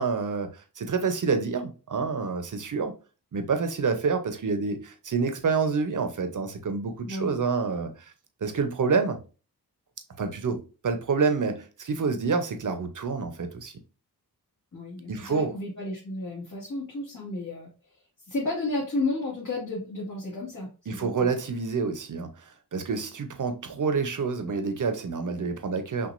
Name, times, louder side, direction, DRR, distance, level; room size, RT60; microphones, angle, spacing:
voice 1, 0.0-2.9 3.3-8.1 8.4-9.2 10.2-13.7 15.1-15.5 20.9-26.1, right 5 dB, 55° right, 0.8 m, -28 dB
voice 2, 7.1-7.4 14.7-17.7 18.2-21.3, left 2 dB, 55° left, 1.7 m, -32 dB
6.0 x 2.4 x 2.5 m
wide cardioid pair, 85°, 38 cm